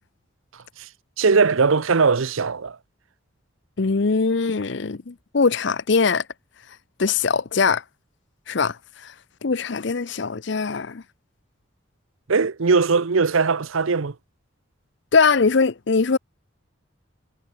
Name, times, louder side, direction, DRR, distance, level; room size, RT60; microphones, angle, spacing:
voice 1, 1.2-2.8 12.3-14.1, right 4 dB, 75° right, 0.7 m, -20 dB
voice 2, 3.8-6.2 7.0-7.8 8.5-8.8 9.0-9.1 9.4-11.0 15.1-16.2, left 4 dB, 55° left, 0.6 m, -21 dB
head